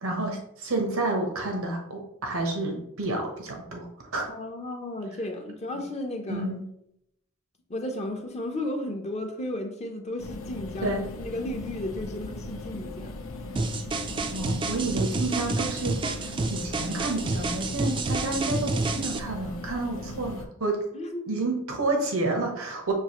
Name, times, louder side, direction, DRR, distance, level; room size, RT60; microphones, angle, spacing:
voice 1, 0.0-4.2 6.3-6.6 10.8-11.1 14.3-20.8 21.3-22.9, right 2 dB, 80° right, 2 dB, 0.9 m, -30 dB
voice 2, 4.3-6.5 7.7-13.2 20.9-21.3, left 1 dB, 30° left, 4 dB, 0.6 m, -34 dB
sound 1, 10.2-20.5, left 2 dB, 85° left, 0.7 m, -38 dB
sound 2, 13.6-19.2, right 3 dB, 25° right, 0.3 m, -29 dB
6.6 x 2.5 x 2.9 m, 0.77 s
head